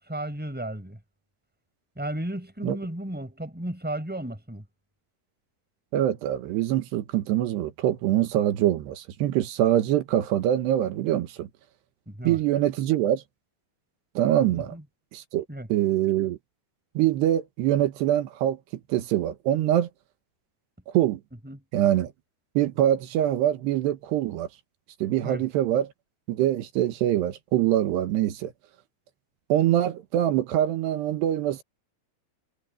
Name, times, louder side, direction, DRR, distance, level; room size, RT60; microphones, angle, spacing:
voice 1, 0.1-1.0 2.0-4.6 12.1-12.4 14.5-14.8 15.5-15.7 21.4-21.6 25.2-25.4, right 1 dB, ahead, 4.5 m, -34 dB
voice 2, 5.9-11.5 12.3-13.2 14.2-14.8 15.1-15.5 15.7-16.4 17.0-18.6 18.9-19.9 20.9-21.2 21.7-22.1 22.6-24.5 25.0-25.9 26.3-28.5 29.5-31.6, right 12 dB, 85° right, 3.5 m, -24 dB
omnidirectional pair, 4.7 m